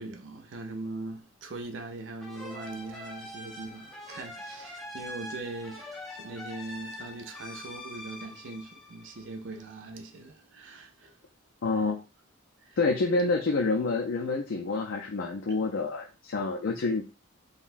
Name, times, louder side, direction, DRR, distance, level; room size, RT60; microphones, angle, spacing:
voice 1, 0.0-11.2 11.7-11.8 12.6-12.8, right 2 dB, 65° right, 0.5 m, -41 dB
sound 1, 2.2-9.6, left 1 dB, ahead, 0.5 m, -43 dB
voice 2, 11.6-12.0 12.8-17.0, left 3 dB, 70° left, 0.4 m, -28 dB
3.8 x 2.2 x 2.5 m
head